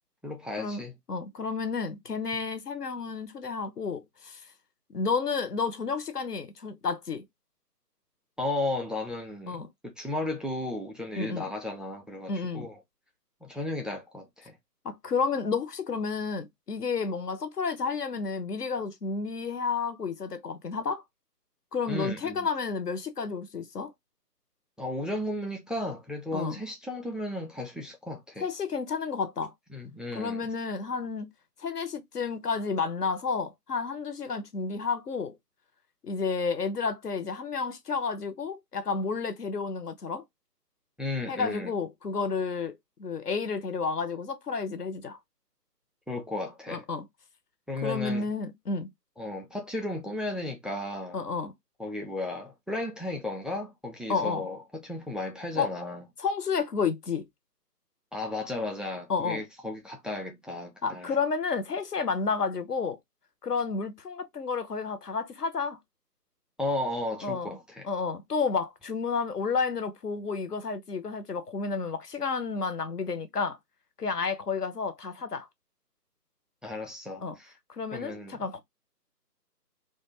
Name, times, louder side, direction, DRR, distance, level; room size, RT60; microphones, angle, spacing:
voice 1, 0.2-1.0 8.4-12.8 13.4-14.6 21.9-22.5 24.8-28.5 29.7-30.5 41.0-41.7 46.1-46.9 47.7-48.3 49.2-51.2 51.8-56.0 58.1-61.2 66.6-67.9 76.6-77.5 77.9-78.4, left 2 dB, ahead, 0.5 m, -34 dB
voice 2, 1.1-4.4 4.9-7.2 9.5-9.7 11.2-11.5 12.3-12.7 14.8-21.0 21.7-23.9 26.3-26.6 28.4-29.5 30.1-31.3 31.6-35.4 36.0-40.2 41.3-45.2 46.7-47.0 47.8-48.9 51.1-51.5 54.1-54.5 55.6-55.7 56.2-57.3 59.1-59.4 60.8-63.0 63.4-65.8 67.2-67.6 67.8-73.6 74.0-75.5 77.2-77.4 77.7-78.6, left 5 dB, 70° left, 0.7 m, -31 dB
2.5 x 2.2 x 2.9 m
figure-of-eight pair, 175°, 49 cm